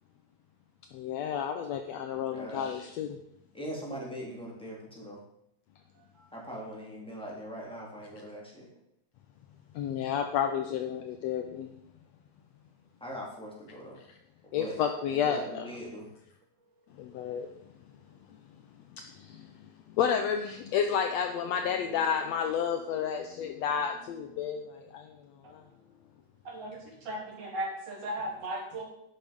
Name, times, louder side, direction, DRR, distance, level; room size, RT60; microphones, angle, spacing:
voice 1, 0.9-3.2 9.8-11.7 14.5-15.7 17.0-17.5 20.0-24.6 24.9-25.0, left 8 dB, 75° left, 5 dB, 1.7 m, -30 dB
voice 2, 2.1-2.7 3.5-5.2 6.3-8.7 13.0-14.0 14.5-14.8 15.1-16.1, equal, ahead, -4 dB, 3.3 m, -41 dB
voice 3, 26.5-28.8, right 1 dB, 55° right, 0 dB, 3.7 m, -36 dB
11.0 x 9.1 x 5.4 m, 0.77 s
omnidirectional pair, 3.5 m